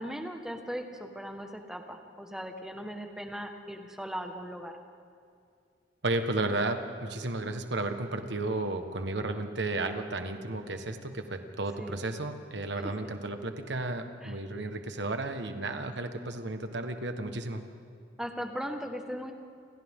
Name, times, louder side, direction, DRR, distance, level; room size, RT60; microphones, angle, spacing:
voice 1, 0.0-4.7 11.8-12.0 13.0-13.1 14.2-14.3 18.2-19.3, equal, 5° right, 4 dB, 1.5 m, -38 dB
voice 2, 6.0-17.6, right 2 dB, 60° right, 7 dB, 1.5 m, -33 dB
28.5 x 26.5 x 3.8 m, 2.3 s
head